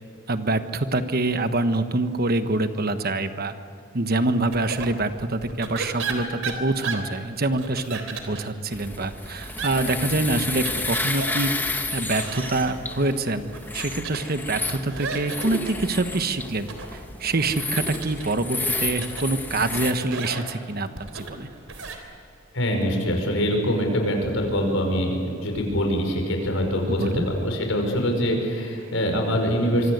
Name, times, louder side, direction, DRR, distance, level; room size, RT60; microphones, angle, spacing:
voice 1, 0.3-3.5 3.9-11.5 11.9-21.5 26.9-27.3, right 2 dB, 50° right, 9 dB, 1.3 m, -25 dB
sound 1, 4.5-22.0, right 4 dB, 85° right, 3.6 m, -37 dB
sound 2, 8.7-19.9, left 2 dB, 10° left, 1.5 m, -31 dB
voice 2, 22.5-29.9, equal, 75° left, 2 dB, 5.8 m, -24 dB
25.5 x 24.0 x 8.1 m, 2.4 s
head